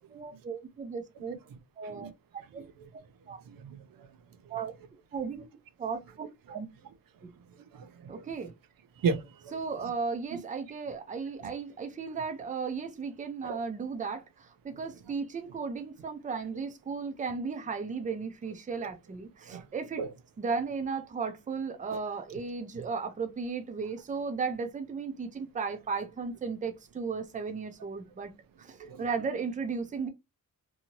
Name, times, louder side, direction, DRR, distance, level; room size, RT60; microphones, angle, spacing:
voice 1, 0.1-1.4 1.8-2.1 2.5-2.6 3.3-3.4 4.5-4.7 5.1-5.4 5.8-6.7 8.1-8.5 9.5-14.2 14.6-20.0 20.4-28.3 28.6-30.1, right 5 dB, 25° right, 0.5 m, -35 dB
voice 2, 2.5-2.9 3.5-3.8 4.5-4.6 6.5-6.6 7.7-8.2 9.0-9.9 10.3-10.4 11.4-11.5 13.4-13.6 18.8-18.9 19.5-19.6 20.0-20.1 21.9-22.0 28.8-29.3, right 5 dB, 85° right, 0.6 m, -36 dB
2.7 x 2.7 x 2.8 m
wide cardioid pair, 175°, 34 cm